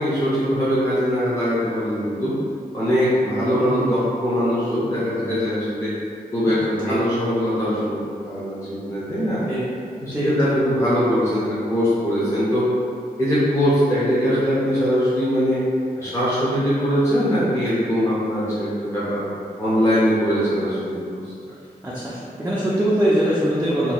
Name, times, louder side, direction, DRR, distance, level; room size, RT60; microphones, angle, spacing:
voice 1, 0.0-2.4 2.7-5.9 6.3-9.4 10.0-12.6 13.2-15.6 16.0-19.3 19.6-21.3, equal, 15° left, -11 dB, 0.8 m, -21 dB
voice 2, 3.5-3.9 6.9-7.0 9.5-9.6 10.1-10.5 21.8-23.9, right 1 dB, 10° right, -8 dB, 0.5 m, -22 dB
2.8 x 2.2 x 4.0 m, 2.4 s
wide cardioid pair, 90°, 16 cm